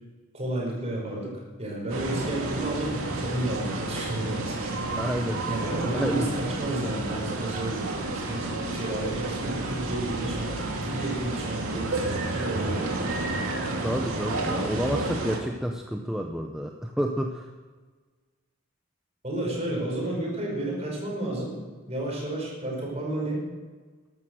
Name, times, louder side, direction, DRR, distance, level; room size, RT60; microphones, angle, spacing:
voice 1, 0.3-4.7 5.5-13.0 19.2-21.6 21.9-23.4, right 1 dB, 30° right, -2 dB, 5.2 m, -31 dB
sound 1, 1.9-15.4, right 2 dB, 85° right, 2.4 m, -31 dB
voice 2, 5.0-5.4 5.9-6.2 13.8-17.5, equal, 5° right, 2 dB, 0.7 m, -29 dB
14.0 x 12.0 x 6.3 m, 1.4 s
head